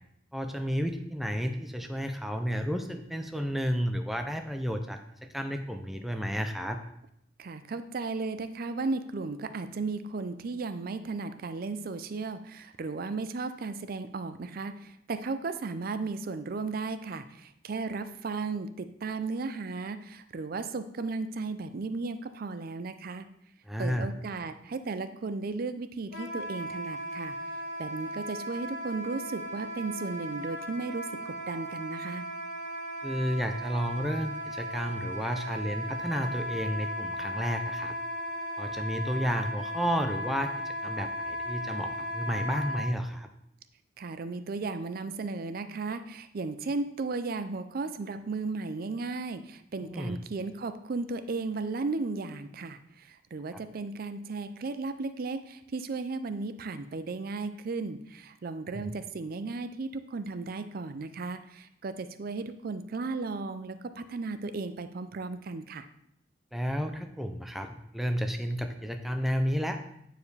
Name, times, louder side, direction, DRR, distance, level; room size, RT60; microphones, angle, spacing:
voice 1, 0.3-6.8 23.7-24.1 33.0-38.0 38.6-43.3 49.8-50.2 53.5-53.6 58.7-58.9 66.5-69.8, equal, ahead, 5 dB, 0.5 m, -32 dB
voice 2, 7.4-23.2 23.8-27.4 27.8-32.2 44.0-65.9, right 3 dB, 55° right, 11 dB, 0.5 m, -35 dB
Wind instrument woodwind instrument, 26.1-42.9, equal, 80° left, 1.6 m, -36 dB
9.1 x 4.7 x 3.3 m, 0.75 s
head